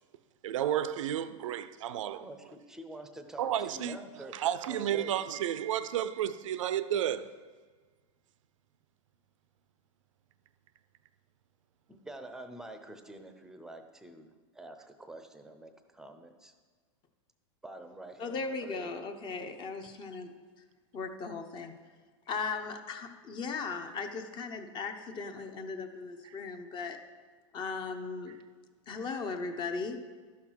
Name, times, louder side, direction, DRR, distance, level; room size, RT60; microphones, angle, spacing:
voice 1, 0.4-2.3 3.4-7.3 26.2-26.4, right 10 dB, 85° right, 0.5 m, -32 dB
voice 2, 2.2-4.3 4.7-5.1 11.9-16.5 17.6-19.0, right 2 dB, 5° right, 0.6 m, -47 dB
voice 3, 18.2-20.3 20.9-21.7 22.3-27.0 27.5-28.4 28.9-30.0, left 4 dB, 30° left, 0.8 m, -37 dB
12.0 x 5.9 x 4.6 m
supercardioid pair, 140°, 16 cm